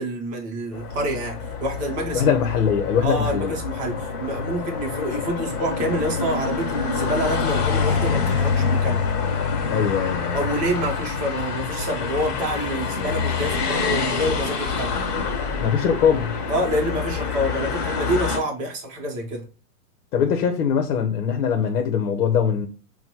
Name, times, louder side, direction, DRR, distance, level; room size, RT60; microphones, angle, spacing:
voice 1, 0.0-2.3 3.0-9.0 10.3-15.0 15.9-16.0 16.5-19.5, right 1 dB, 15° right, 0.8 m, -27 dB
sound 1, 0.7-18.4, left 5 dB, 40° left, 1.5 m, -26 dB
voice 2, 2.1-3.5 9.7-10.4 15.6-16.3 20.1-22.7, left 7 dB, 70° left, 0.9 m, -21 dB
5.8 x 2.2 x 2.8 m
supercardioid pair, 160°, 45 cm